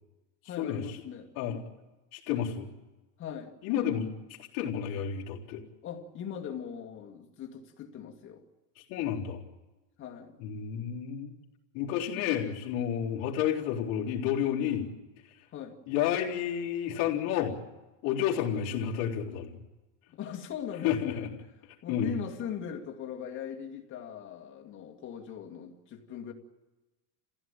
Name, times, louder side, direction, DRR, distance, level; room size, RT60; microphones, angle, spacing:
voice 1, 0.5-1.3 3.2-3.6 5.8-8.4 10.0-10.4 15.5-15.8 20.1-21.3 21.8-26.3, left 8 dB, 25° left, 2.0 m, -40 dB
voice 2, 2.1-2.7 3.6-4.1 4.4-5.6 8.8-9.4 10.4-11.3 11.7-14.9 15.9-17.6 18.0-19.5 20.8-21.3 21.9-22.1, left 9 dB, 40° left, 3.7 m, -30 dB
29.5 x 16.0 x 9.0 m
supercardioid pair, 165°, 49 cm